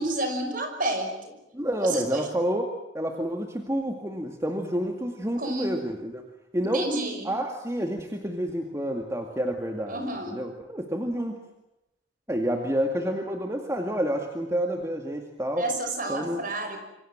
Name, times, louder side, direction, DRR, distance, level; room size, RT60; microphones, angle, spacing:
voice 1, 0.0-1.3 1.8-2.3 5.4-5.7 6.7-7.3 9.9-10.4 15.6-16.8, right 2 dB, 45° right, 6 dB, 5.9 m, -30 dB
voice 2, 1.5-2.7 2.9-6.3 6.5-6.9 7.2-11.4 12.3-15.7 16.1-16.5, equal, 15° right, 3 dB, 2.1 m, -29 dB
27.5 x 25.0 x 7.4 m, 0.92 s
head